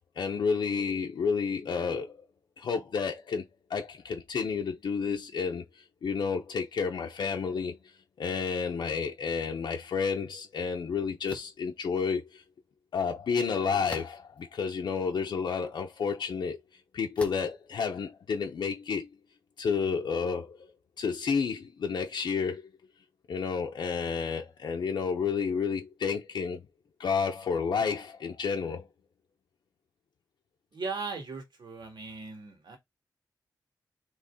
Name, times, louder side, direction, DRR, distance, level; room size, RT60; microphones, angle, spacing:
voice 1, 0.2-2.3 2.6-7.9 8.2-12.4 12.9-19.1 19.6-20.7 21.0-22.7 23.3-26.7 27.0-28.9, left 5 dB, 85° left, 0.7 m, -31 dB
sound 1, 11.3-11.6 13.9-14.4 15.1-15.2 17.2-17.6, left 2 dB, 15° left, 0.9 m, -43 dB
voice 2, 30.7-32.8, right 4 dB, 80° right, 1.8 m, -38 dB
4.1 x 3.1 x 3.5 m
wide cardioid pair, 170°, 7 cm